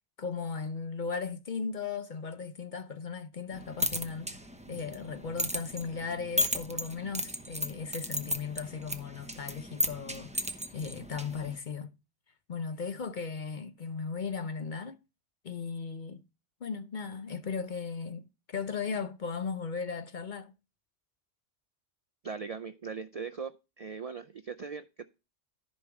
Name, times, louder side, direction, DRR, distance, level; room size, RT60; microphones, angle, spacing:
voice 1, 0.2-4.4 4.7-11.9 12.5-15.0 15.4-16.2 16.6-20.5, left 5 dB, 50° left, 0.6 m, -37 dB
chain clanging, 3.5-11.6, equal, 5° right, 0.7 m, -35 dB
voice 2, 22.2-25.0, right 5 dB, 70° right, 0.3 m, -40 dB
14.0 x 5.4 x 3.4 m
omnidirectional pair, 1.3 m